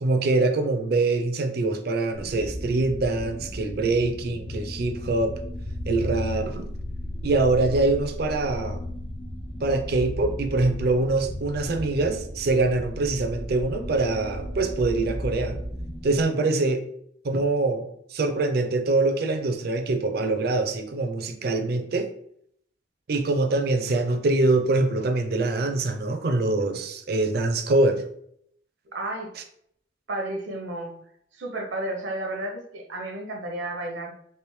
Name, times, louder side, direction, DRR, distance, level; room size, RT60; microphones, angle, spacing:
voice 1, 0.0-5.4 5.9-6.7 7.2-8.8 9.6-15.6 16.0-16.8 17.2-22.1 23.1-28.0, right 2 dB, 55° right, 6 dB, 0.5 m, -24 dB
sound 1, 2.1-16.2, equal, 70° left, 1.5 m, -35 dB
voice 2, 28.9-29.3 30.1-31.0 31.3-34.1, right 1 dB, 80° right, 2 dB, 0.8 m, -32 dB
3.4 x 2.9 x 3.1 m, 0.69 s
head